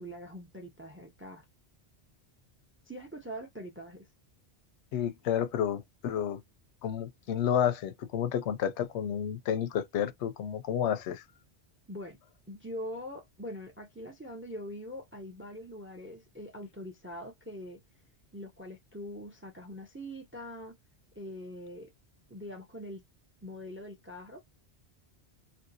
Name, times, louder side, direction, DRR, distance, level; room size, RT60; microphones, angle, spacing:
voice 1, 0.0-1.4 2.9-4.1 11.9-12.2 12.5-17.8 18.3-20.7 21.2-21.9 22.3-23.0 23.4-24.6, equal, 15° right, 0.4 m, -43 dB
voice 2, 4.9-6.4 6.8-11.2, left 9 dB, 85° left, 0.9 m, -30 dB
2.8 x 2.6 x 2.7 m
omnidirectional pair, 1.1 m